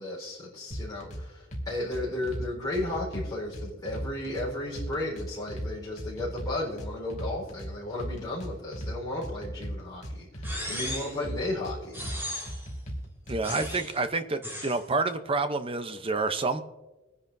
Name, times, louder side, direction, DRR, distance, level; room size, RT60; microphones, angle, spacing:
voice 1, 0.0-12.0, left 1 dB, 20° left, -7 dB, 4.2 m, -34 dB
sound 1, 0.7-1.2 1.5-2.4 2.7-4.5 4.8-5.7 6.0-7.7 8.0-8.9 9.2-10.9 11.2-12.2 12.5-13.7, equal, 35° left, 2.4 m, -36 dB
sound 2, 10.4-11.2 11.9-12.7 13.4-14.0 14.4-14.8, equal, 10° right, 4.4 m, -36 dB
voice 2, 13.3-16.6, right 3 dB, 25° right, 9 dB, 0.7 m, -28 dB
24.0 x 10.0 x 2.7 m, 1.1 s
head